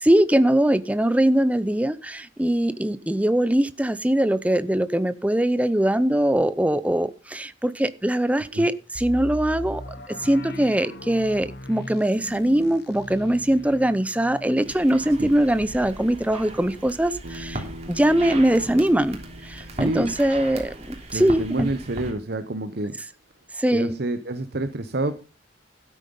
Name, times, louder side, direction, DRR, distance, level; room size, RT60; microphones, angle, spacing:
voice 1, 0.0-9.8 10.1-17.6 17.9-19.2 19.4-21.7 23.6-24.0, right 1 dB, 5° right, 0.6 m, -22 dB
sound 1, 8.9-18.7 19.0-19.1 19.6-19.9, left 1 dB, 55° left, 1.3 m, -40 dB
sound 2, 14.6-22.1, right 1 dB, 35° right, 3.3 m, -38 dB
Bass guitar, 17.2-21.5, equal, 75° right, 1.5 m, -43 dB
voice 2, 19.7-20.2 21.1-23.0 23.7-25.2, right 2 dB, 55° right, 0.9 m, -28 dB
12.5 x 9.2 x 5.4 m
head